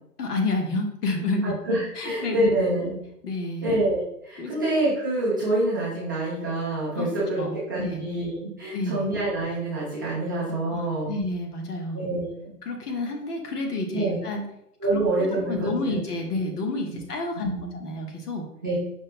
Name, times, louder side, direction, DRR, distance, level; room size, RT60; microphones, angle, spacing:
voice 1, 0.2-1.6 2.0-2.9 3.2-3.7 4.4-4.5 7.0-7.1 7.4-8.0 8.7-9.1 10.7-12.1 12.6-14.5 14.9-18.5, left 2 dB, 70° left, 3 dB, 1.2 m, -30 dB
voice 2, 1.4-2.9 3.6-11.1 11.9-12.5 13.9-14.2 14.8-16.0 17.3-17.8 18.6-18.7, right 1 dB, 15° right, -11 dB, 0.4 m, -26 dB
5.1 x 2.1 x 4.2 m, 0.77 s
hypercardioid pair, 145°, 48 cm